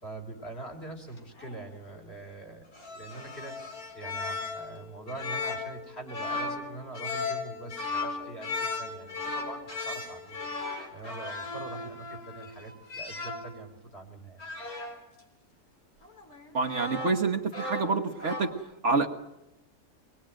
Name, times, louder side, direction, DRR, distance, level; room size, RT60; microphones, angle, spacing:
voice 1, 0.0-10.5 10.9-14.4, right 2 dB, 40° left, 1 dB, 4.6 m, -43 dB
sound 1, 1.2-1.6 2.7-13.6 14.4-15.0 16.0-17.3 17.5-18.5, left 3 dB, 70° left, 4.4 m, -36 dB
voice 2, 16.5-18.5 18.8-19.1, right 4 dB, 50° right, 2 dB, 1.7 m, -27 dB
25.0 x 21.0 x 9.1 m, 0.93 s
omnidirectional pair, 1.6 m